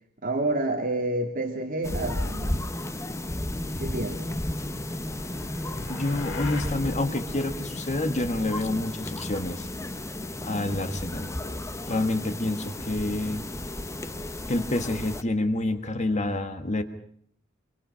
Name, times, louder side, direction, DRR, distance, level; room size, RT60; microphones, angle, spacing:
voice 1, 0.2-2.6 3.8-4.4, right 2 dB, 45° right, 2 dB, 2.6 m, -29 dB
sound 1, 1.8-15.2, left 1 dB, 15° left, 0.9 m, -33 dB
sound 2, 4.6-6.8, left 4 dB, 70° left, 2.7 m, -42 dB
voice 2, 5.9-9.7 10.4-13.4 14.5-16.8, left 2 dB, 35° left, 8 dB, 1.6 m, -28 dB
26.5 x 24.0 x 5.7 m, 0.64 s
head